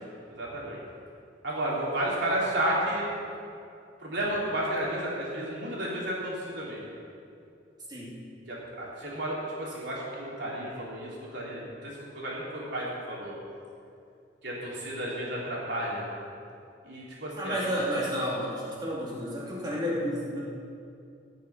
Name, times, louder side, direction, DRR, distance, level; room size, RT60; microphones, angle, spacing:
voice 1, 0.3-0.8 1.4-3.1 4.0-6.8 8.5-13.3 14.4-16.0 16.8-17.7, right 1 dB, 70° right, -5 dB, 3.4 m, -32 dB
voice 2, 17.4-20.4, equal, 25° right, -5 dB, 2.7 m, -31 dB
15.5 x 6.7 x 5.9 m, 2.5 s
head